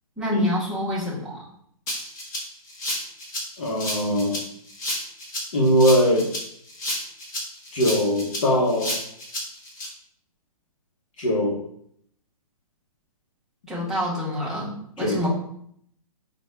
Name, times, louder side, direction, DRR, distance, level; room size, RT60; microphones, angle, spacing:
voice 1, 0.2-1.4 13.7-15.3, left 1 dB, ahead, -9 dB, 0.8 m, -27 dB
Rattle (instrument), 1.9-9.9, left 1 dB, 30° left, 1.0 m, -31 dB
voice 2, 3.6-4.4 5.5-6.3 7.7-8.9 11.2-11.6 15.0-15.3, equal, 60° left, -3 dB, 1.0 m, -21 dB
5.2 x 2.2 x 3.3 m, 0.69 s
hypercardioid pair, 160°, 19 cm